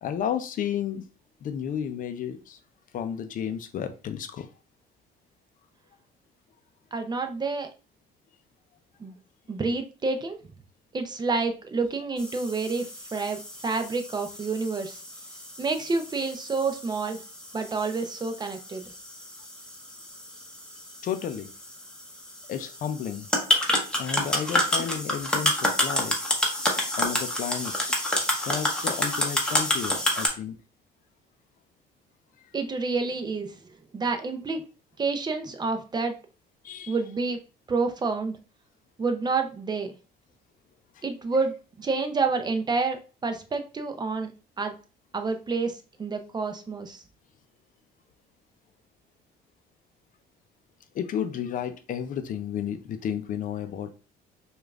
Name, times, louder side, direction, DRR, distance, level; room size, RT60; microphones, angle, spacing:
voice 1, 0.0-1.0 1.4-2.6 2.9-4.5 21.0-21.5 22.5-23.3 24.0-26.2 27.0-27.9 28.4-30.6 36.6-36.9 41.0-41.1 50.9-53.9, left 8 dB, 50° left, 9 dB, 0.5 m, -32 dB
voice 2, 6.9-7.7 9.0-9.2 9.5-10.4 10.9-15.0 15.6-17.2 17.5-18.8 32.5-33.6 33.9-34.6 35.0-36.2 36.9-37.4 37.7-38.4 39.0-39.9 41.0-44.3 44.6-44.7 45.1-47.0, right 4 dB, 25° right, 6 dB, 0.5 m, -28 dB
sound 1, 12.2-30.3, left 1 dB, 5° left, 0.9 m, -29 dB
4.9 x 2.4 x 2.4 m, 0.34 s
cardioid pair, 110°, 17 cm